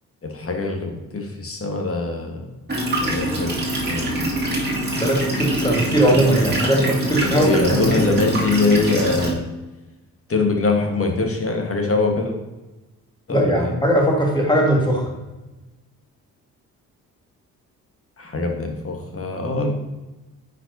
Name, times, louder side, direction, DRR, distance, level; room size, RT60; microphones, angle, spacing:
voice 1, 0.2-2.5 2.9-4.4 6.1-6.2 7.1-9.5 10.3-12.4 13.3-13.7 18.2-19.7, left 3 dB, 30° left, 3 dB, 1.6 m, -23 dB
sound 1, 2.7-9.3, right 1 dB, 20° right, 2.2 m, -24 dB
voice 2, 5.0-7.8 13.3-15.1, right 1 dB, 10° left, 0 dB, 2.0 m, -19 dB
9.6 x 5.2 x 2.8 m, 1.1 s
figure-of-eight pair, 40°, 45 cm